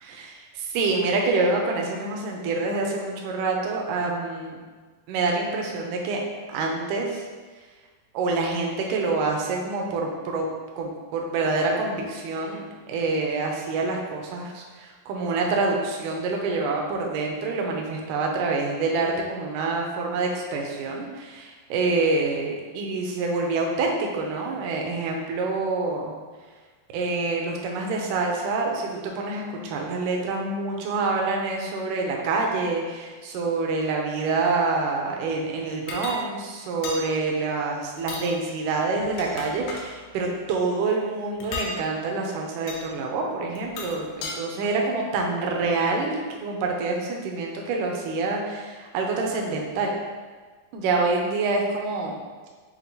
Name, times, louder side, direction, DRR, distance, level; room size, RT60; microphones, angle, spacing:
voice 1, 0.0-4.6 5.1-6.2 6.5-7.2 8.1-10.5 10.8-26.2 26.9-50.0 50.7-52.2, right 3 dB, 80° right, 0 dB, 1.9 m, -26 dB
sound 1, 35.9-36.2 36.8-37.0 38.0-38.3 39.0-39.9 41.4-41.7 42.7-42.8 43.6-44.4, left 3 dB, 85° left, 2.3 m, -34 dB
7.4 x 2.5 x 2.7 m, 1.4 s
omnidirectional pair, 4.1 m